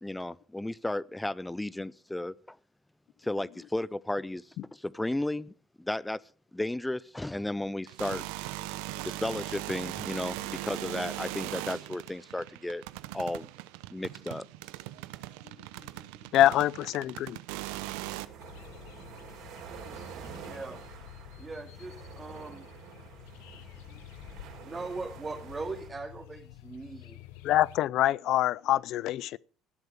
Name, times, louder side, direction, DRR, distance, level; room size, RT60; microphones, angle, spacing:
voice 1, 0.0-2.6 3.2-6.2 6.5-8.2 9.0-12.8 13.1-13.5 13.9-14.4, left 1 dB, 10° left, 0.6 m, -34 dB
sound 1, 7.9-18.3, right 17 dB, 85° right, 0.8 m, -39 dB
voice 2, 16.3-17.4 27.4-29.4, left 13 dB, 65° left, 0.5 m, -25 dB
sound 2, 18.2-25.9, right 7 dB, 65° right, 5.1 m, -48 dB
sound 3, 18.4-27.8, left 14 dB, 85° left, 1.2 m, -50 dB
voice 3, 20.4-20.8 21.4-22.7 23.6-23.9 24.6-27.2, right 3 dB, 25° right, 2.6 m, -40 dB
18.0 x 8.1 x 5.0 m
supercardioid pair, 95°, 0 cm